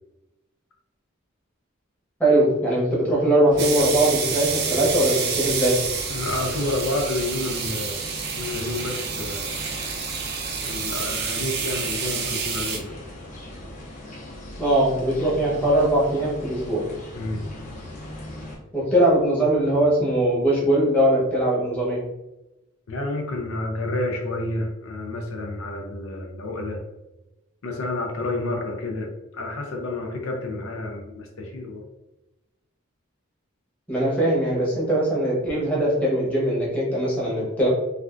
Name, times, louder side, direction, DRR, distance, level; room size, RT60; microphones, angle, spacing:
voice 1, 2.2-5.8 14.6-16.9 18.7-22.0 33.9-37.7, right 1 dB, 5° left, -6 dB, 0.9 m, -21 dB
sound 1, 3.5-18.6, left 1 dB, 35° left, 0.7 m, -39 dB
sound 2, 3.6-12.8, right 6 dB, 50° right, 0.4 m, -29 dB
voice 2, 6.1-9.5 10.6-13.0 17.1-17.5 22.9-26.8 27.6-29.1 29.3-31.8, left 2 dB, 80° left, 1 dB, 0.5 m, -29 dB
3.2 x 2.5 x 2.4 m, 0.99 s
head